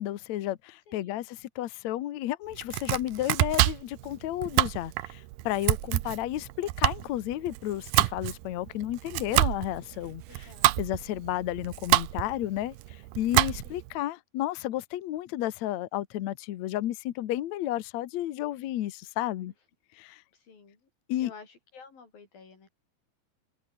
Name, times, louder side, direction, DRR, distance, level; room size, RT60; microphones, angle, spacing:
voice 1, 0.0-10.5 10.8-19.5 20.0-20.2 21.1-21.3, left 14 dB, 80° left, 1.6 m, -32 dB
voice 2, 0.9-1.3 10.3-10.7 13.6-13.8 20.3-20.9 21.2-22.7, left 5 dB, 60° left, 7.5 m, -51 dB
Domestic sounds home sounds, 2.5-13.9, right 17 dB, 75° right, 2.2 m, -28 dB
omnidirectional pair, 4.8 m